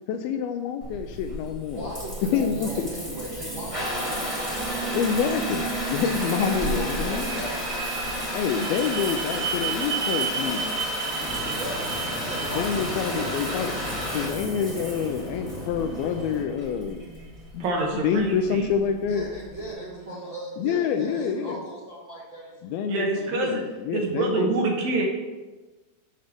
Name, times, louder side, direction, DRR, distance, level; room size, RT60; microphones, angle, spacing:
voice 1, 0.1-1.9 2.3-2.9 4.9-7.4 8.3-10.8 12.5-13.7 14.1-17.0 17.5-17.7 18.0-19.3 20.6-21.6 22.6-23.1 23.4-24.5, left 7 dB, 80° left, 6 dB, 2.2 m, -27 dB
Water tap faucet / Bathtub (filling or washing) / Trickle dribble, 0.8-19.7, equal, 5° right, 1.1 m, -32 dB
voice 2, 1.7-4.3 6.6-8.0 11.6-13.3 19.0-22.9 23.2-23.5, right 1 dB, 50° right, -6 dB, 1.4 m, -38 dB
sound 1, 2.6-20.7, right 6 dB, 90° right, 2.8 m, -37 dB
sound 2, 11.2-16.4, left 1 dB, 55° left, 0.8 m, -37 dB
voice 3, 17.6-18.7 22.9-23.6 23.9-25.0, right 2 dB, 70° right, 0 dB, 2.7 m, -26 dB
14.5 x 5.4 x 3.5 m, 1.2 s
omnidirectional pair, 4.6 m